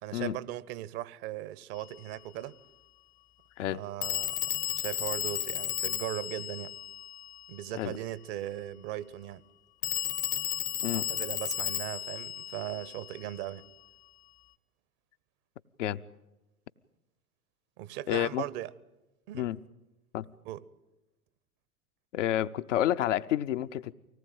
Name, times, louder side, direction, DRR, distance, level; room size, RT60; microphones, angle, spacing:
voice 1, 0.0-2.5 3.7-6.8 7.5-9.4 10.9-13.6 17.8-18.7 19.3-19.5 20.4-20.6, right 14 dB, 40° right, 1.0 m, -38 dB
Telephone, 1.8-1.9 4.0-7.7 9.8-13.5, left 12 dB, 30° left, 0.8 m, -34 dB
voice 2, 18.1-18.4 19.3-19.6 20.1-20.3 22.1-23.9, left 12 dB, 60° left, 0.8 m, -29 dB
24.5 x 18.5 x 9.0 m
figure-of-eight pair, 85°, 43 cm